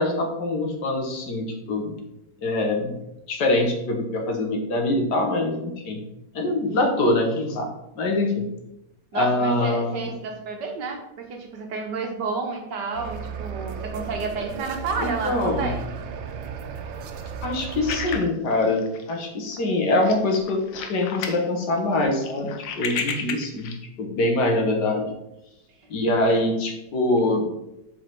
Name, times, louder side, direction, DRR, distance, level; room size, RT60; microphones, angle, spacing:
voice 1, 0.0-1.9 2.4-3.0 3.3-6.0 6.3-7.7 8.0-8.4 9.1-10.1 15.0-15.7 17.4-20.6 20.9-25.1 25.9-27.5, left 2 dB, 65° left, 2 dB, 1.7 m, -24 dB
voice 2, 9.1-15.9 26.2-26.5, right 4 dB, 70° right, 3 dB, 1.7 m, -31 dB
sound 1, 12.9-18.2, right 7 dB, 90° right, 1.4 m, -34 dB
sound 2, 17.9-19.2 19.6-19.7 20.0-21.4 21.8-23.8, left 6 dB, 85° left, 1.5 m, -32 dB
7.4 x 4.7 x 4.6 m, 0.88 s
omnidirectional pair, 2.0 m